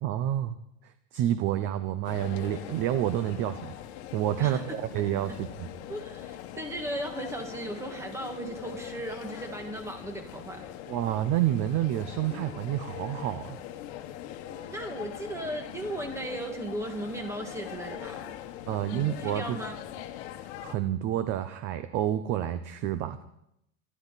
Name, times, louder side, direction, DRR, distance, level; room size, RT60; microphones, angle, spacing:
voice 1, 0.0-0.6 0.8-3.7 4.1-5.7 10.9-13.6 18.7-19.6 20.6-23.2, right 12 dB, 30° right, 11 dB, 0.6 m, -29 dB
sound 1, 2.0-20.8, left 11 dB, 50° left, 1.4 m, -42 dB
voice 2, 5.9-10.7 14.5-18.3 18.9-19.8, right 1 dB, 5° right, 4 dB, 1.8 m, -36 dB
24.0 x 12.0 x 4.1 m, 0.79 s
supercardioid pair, 165°, 41 cm